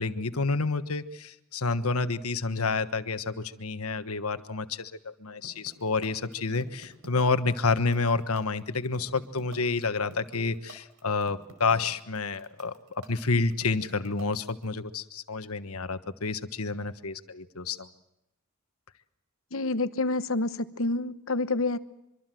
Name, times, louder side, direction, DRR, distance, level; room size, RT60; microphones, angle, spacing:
voice 1, 0.0-17.9, left 4 dB, 90° left, 11 dB, 1.4 m, -29 dB
sound 1, 5.4-14.6, right 2 dB, 90° right, 5.1 m, -48 dB
voice 2, 19.5-21.8, left 2 dB, 70° left, 12 dB, 1.1 m, -28 dB
25.0 x 24.5 x 7.7 m, 0.85 s
head